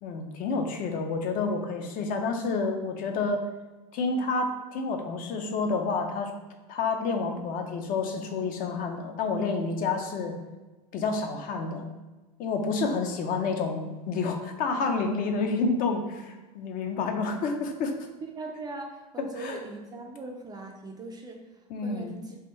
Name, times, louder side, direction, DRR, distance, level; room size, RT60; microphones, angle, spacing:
voice 1, 0.0-3.4 3.9-6.3 6.7-10.4 10.9-11.8 12.4-17.9 19.4-19.6 21.7-22.1, left 4 dB, 45° left, 4 dB, 0.6 m, -29 dB
voice 2, 18.2-22.4, right 2 dB, 20° right, 2 dB, 0.4 m, -40 dB
3.6 x 2.5 x 4.3 m, 1.2 s
supercardioid pair, 125°, 20 cm